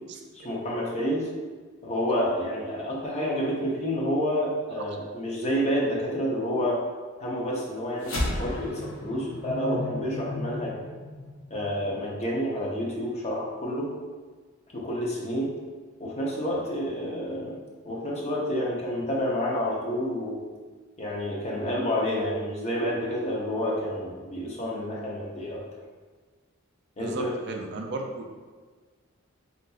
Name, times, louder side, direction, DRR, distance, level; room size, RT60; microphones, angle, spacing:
voice 1, 0.4-1.3 1.8-6.8 7.2-10.8 11.5-13.9 14.7-15.5 16.0-17.6 17.8-20.4 21.0-25.6 27.0-27.3, equal, 35° left, -3 dB, 0.6 m, -29 dB
sound 1, 8.0-12.6, left 1 dB, 90° left, 0.7 m, -34 dB
voice 2, 27.0-28.3, right 2 dB, 55° right, 2 dB, 0.4 m, -35 dB
3.8 x 2.5 x 2.3 m, 1.4 s
head